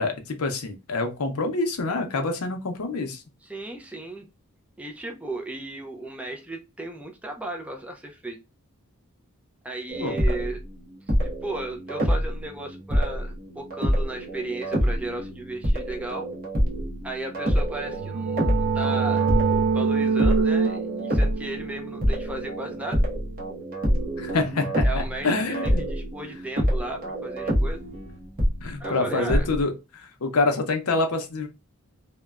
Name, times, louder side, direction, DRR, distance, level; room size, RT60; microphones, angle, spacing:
voice 1, 0.0-3.2 10.0-10.2 24.2-25.8 28.6-31.5, left 3 dB, 80° left, 6 dB, 0.6 m, -26 dB
voice 2, 3.4-4.3 4.8-8.4 9.6-10.6 11.2-16.3 17.0-19.3 19.7-23.0 24.8-25.3 25.6-27.8 28.8-29.5, right 2 dB, 5° right, 2 dB, 0.4 m, -35 dB
sound 1, 9.9-10.6 11.1-29.6, equal, 40° right, 0.9 m, -27 dB
sound 2, 17.6-23.2, right 5 dB, 85° right, 0.3 m, -26 dB
3.0 x 2.1 x 2.3 m, 0.26 s
head